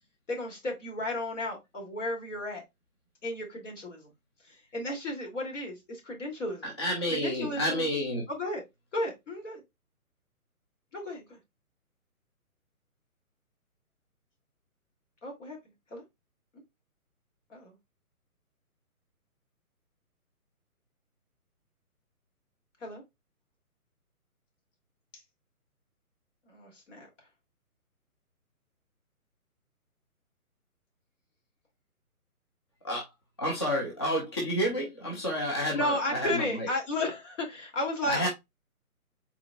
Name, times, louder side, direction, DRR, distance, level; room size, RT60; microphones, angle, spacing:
voice 1, 0.3-2.6 3.2-4.1 4.4-6.7 7.1-7.9 8.3-8.6 8.9-9.6 10.9-11.4 15.2-15.6 15.9-16.0 17.5-17.7 22.8-23.0 26.5-27.1 35.7-38.3, left 1 dB, 55° left, 2.6 m, -34 dB
voice 2, 6.6-8.2 32.8-33.1 33.4-36.7 38.1-38.3, equal, 20° left, 0.5 m, -30 dB
4.6 x 4.0 x 2.3 m
figure-of-eight pair, 145°, 44 cm